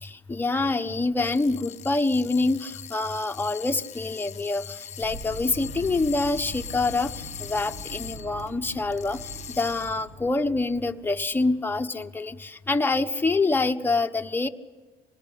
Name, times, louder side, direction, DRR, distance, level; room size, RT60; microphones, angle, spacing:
voice 1, 0.0-14.5, left 3 dB, 10° left, 5 dB, 1.1 m, -26 dB
sound 1, 1.1-8.5 8.9-10.1, left 9 dB, 40° left, 0.8 m, -41 dB
sound 2, 5.0-11.3, right 2 dB, 85° right, 7.6 m, -42 dB
26.0 x 19.5 x 8.6 m, 1.4 s
cardioid pair, 110°, 17 cm